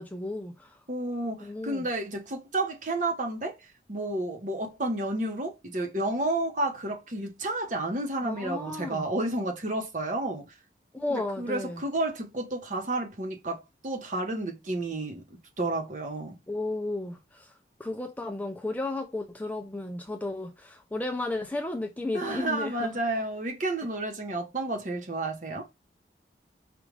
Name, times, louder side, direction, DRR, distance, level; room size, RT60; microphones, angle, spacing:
voice 1, 0.0-0.8 1.4-1.8 8.2-9.1 10.9-11.8 16.5-17.5 17.8-22.9, left 2 dB, 10° left, 0.4 m, -33 dB
voice 2, 0.9-3.5 3.9-10.4 11.1-15.2 15.6-16.3 22.1-25.7, right 2 dB, 45° right, 1.0 m, -31 dB
5.1 x 2.4 x 3.2 m
head